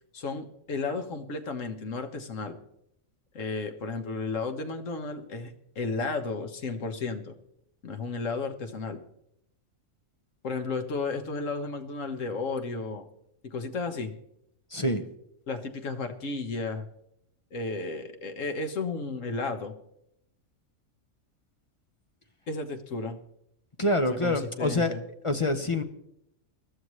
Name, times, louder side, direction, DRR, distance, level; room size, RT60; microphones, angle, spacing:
voice 1, 0.1-2.6 3.3-7.3 7.8-9.0 10.4-13.0 13.4-14.1 15.5-16.9 17.5-19.7 22.5-23.2 24.2-25.0, left 3 dB, 70° left, 7 dB, 1.6 m, -33 dB
voice 2, 14.7-15.0 23.8-24.9 25.2-25.8, left 1 dB, 30° left, 7 dB, 0.8 m, -26 dB
21.0 x 12.5 x 3.2 m, 0.77 s
omnidirectional pair, 1.4 m